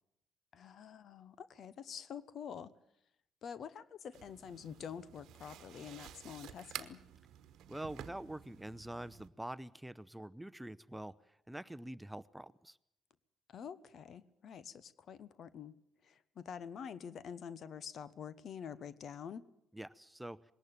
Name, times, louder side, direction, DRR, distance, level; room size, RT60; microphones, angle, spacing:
voice 1, 0.5-2.7 3.4-7.0 13.5-15.7 16.0-19.4, left 7 dB, 60° left, 18 dB, 1.0 m, -47 dB
sound 1, 4.1-9.3, right 11 dB, 70° right, 1.2 m, -51 dB
voice 2, 7.7-12.8 19.7-20.4, right 1 dB, 5° right, 17 dB, 0.8 m, -45 dB
20.5 x 18.5 x 8.8 m, 0.77 s
hypercardioid pair, 50°, 0 cm